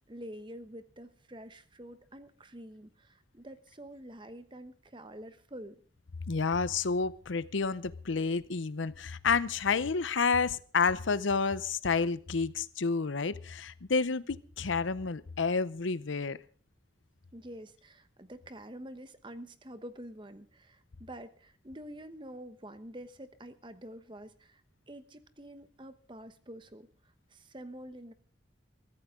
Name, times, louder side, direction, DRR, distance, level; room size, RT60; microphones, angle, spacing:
voice 1, 0.1-5.8 17.3-24.6 24.9-26.9 27.3-28.1, right 1 dB, 25° right, 11 dB, 1.0 m, -47 dB
voice 2, 6.3-16.4, left 4 dB, 80° left, 16 dB, 0.7 m, -30 dB
22.5 x 14.5 x 3.7 m, 0.41 s
head